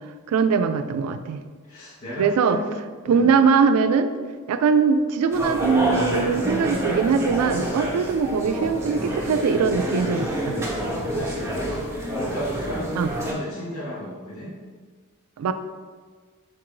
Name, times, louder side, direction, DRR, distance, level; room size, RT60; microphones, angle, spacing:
voice 1, 0.3-1.4 2.2-2.6 3.1-4.1 4.5-10.5 13.0-13.1 15.4-15.5, right 5 dB, 80° right, 12 dB, 0.3 m, -21 dB
voice 2, 1.7-3.3 11.0-14.5, equal, 75° left, -7 dB, 1.2 m, -34 dB
sound 1, 5.3-13.3, equal, 10° right, 0.6 m, -28 dB
3.9 x 2.5 x 4.6 m, 1.5 s
head